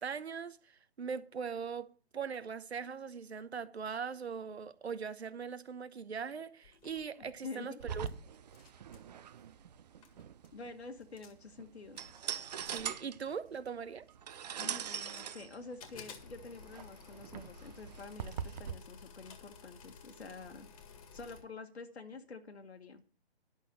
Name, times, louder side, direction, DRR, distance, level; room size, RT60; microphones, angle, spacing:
voice 1, 0.0-8.1 12.6-14.0, right 6 dB, 80° right, 1.1 m, -41 dB
sound 1, 6.6-8.1 8.3-9.1 9.7-9.8 10.0-10.6 11.0-11.5 12.0-13.7 14.3-15.4 15.8-21.4, left 6 dB, 35° left, 1.8 m, -55 dB
voice 2, 7.2-7.8 10.5-12.0 14.5-20.7 21.1-23.0, left 4 dB, 80° left, 1.6 m, -48 dB
sound 2, 7.8-18.7, right 8 dB, 40° right, 0.7 m, -43 dB
10.5 x 6.3 x 7.2 m
hypercardioid pair, 150°, 32 cm